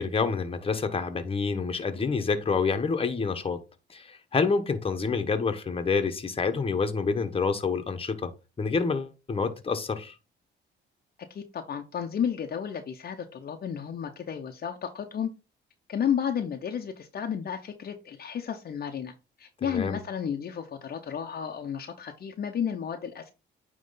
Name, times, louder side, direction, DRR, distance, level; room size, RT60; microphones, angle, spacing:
voice 1, 0.0-3.6 3.9-8.3 8.6-10.1 19.6-20.0, left 4 dB, 30° left, 1.1 m, -28 dB
voice 2, 11.3-15.3 15.9-23.3, left 8 dB, 50° left, 0.8 m, -32 dB
9.2 x 3.2 x 3.9 m
cardioid pair, 90°, 20 cm